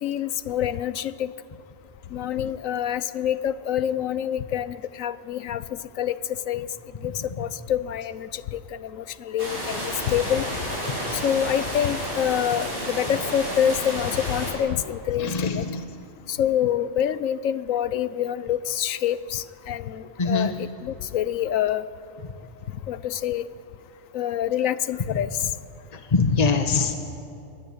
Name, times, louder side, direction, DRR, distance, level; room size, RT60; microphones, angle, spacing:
voice 1, 0.0-1.3 2.1-5.6 6.0-6.7 7.0-10.5 11.2-15.7 16.3-21.8 22.9-23.5 24.1-25.5, left 10 dB, 85° left, 15 dB, 1.1 m, -26 dB
sound 1, 9.4-14.5, equal, 45° right, 8.3 m, -31 dB
voice 2, 15.2-15.8 20.2-20.5 26.1-27.0, left 4 dB, 30° left, 6 dB, 1.4 m, -22 dB
24.0 x 21.0 x 8.7 m, 2.6 s
omnidirectional pair, 1.3 m